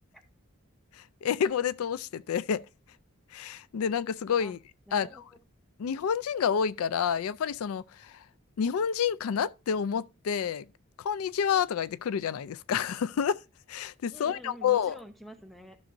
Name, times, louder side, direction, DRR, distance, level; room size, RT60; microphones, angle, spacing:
voice 1, 1.0-2.6 3.3-4.6 4.9-5.1 5.8-8.2 8.6-10.7 11.0-13.4 13.7-14.9, left 7 dB, 85° left, 0.4 m, -29 dB
voice 2, 4.9-5.4 14.1-15.8, right 1 dB, ahead, 0.8 m, -48 dB
13.0 x 6.2 x 2.6 m
head